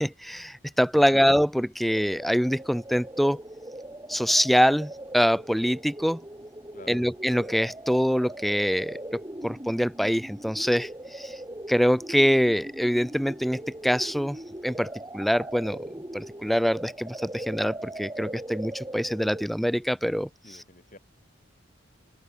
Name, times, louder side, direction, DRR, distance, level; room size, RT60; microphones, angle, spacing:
voice 1, 0.0-3.4 4.1-6.2 6.9-9.0 9.4-10.9 11.2-11.3 11.7-14.4 14.6-14.9 15.1-15.8 16.1-20.3, equal, ahead, 0.6 m, -24 dB
sound 1, 1.9-19.5, right 1 dB, 15° right, 2.2 m, -40 dB
voice 2, 6.7-7.1 20.4-21.0, left 2 dB, 45° left, 4.4 m, -49 dB
open air
head